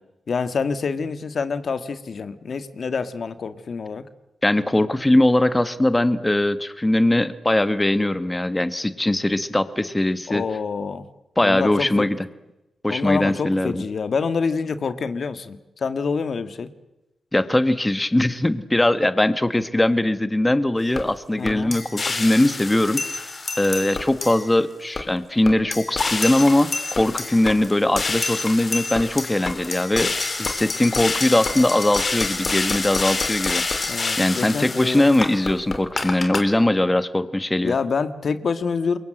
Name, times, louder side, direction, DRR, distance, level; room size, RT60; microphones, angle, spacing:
voice 1, 0.3-4.0 10.3-11.1 11.4-12.1 12.9-16.7 21.4-21.7 33.9-35.1 37.6-39.0, left 5 dB, 60° left, 11 dB, 1.7 m, -26 dB
voice 2, 4.4-10.4 11.4-12.2 12.8-13.8 17.3-23.3 23.6-33.9 34.2-37.7, left 1 dB, 15° left, 12 dB, 1.4 m, -21 dB
sound 1, 21.0-21.1 21.5-24.5 25.0-25.1 25.5-36.4, left 3 dB, 45° left, 3.3 m, -27 dB
28.0 x 22.5 x 7.9 m, 0.96 s
cardioid pair, 80°, 0 cm